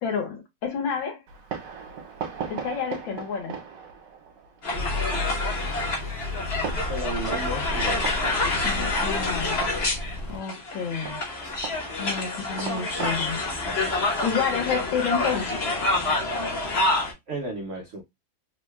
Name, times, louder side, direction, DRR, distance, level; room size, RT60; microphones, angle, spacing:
voice 1, 0.0-1.2 2.5-3.6 8.6-9.6 10.3-11.2 12.0-13.4 14.2-15.6, left 6 dB, 75° left, 1.7 m, -29 dB
Fireworks, 1.3-15.4, right 7 dB, 65° right, 1.5 m, -40 dB
sound 1, 4.6-17.1, left 2 dB, 45° left, 0.9 m, -27 dB
sound 2, 4.7-10.4, left 2 dB, 45° right, 0.6 m, -33 dB
voice 2, 6.9-8.1 11.4-11.6 12.0-12.1 17.3-18.0, right 2 dB, 85° right, 0.6 m, -34 dB
3.7 x 2.2 x 3.1 m
omnidirectional pair, 2.2 m